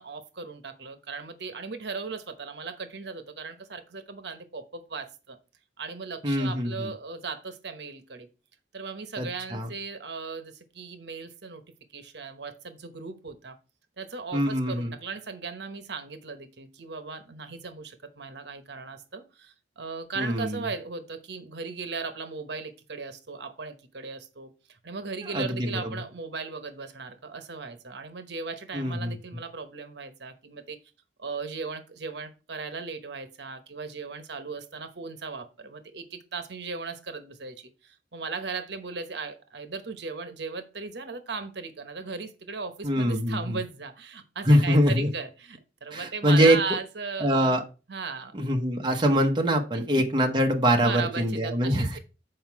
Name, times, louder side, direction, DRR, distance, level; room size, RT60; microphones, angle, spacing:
voice 1, 0.0-5.4 5.8-8.3 8.7-11.6 11.9-13.6 14.0-30.8 31.2-47.6 47.9-48.4 49.7-49.9 50.8-52.0, right 4 dB, 70° right, 9 dB, 1.0 m, -37 dB
voice 2, 6.2-6.9 9.2-9.7 14.3-14.9 20.2-20.6 25.2-26.0 28.7-29.1 42.8-43.6 44.4-45.1 45.9-46.6 47.2-47.6 48.3-52.0, equal, 25° right, 2 dB, 0.9 m, -24 dB
7.9 x 4.8 x 4.6 m, 0.32 s
head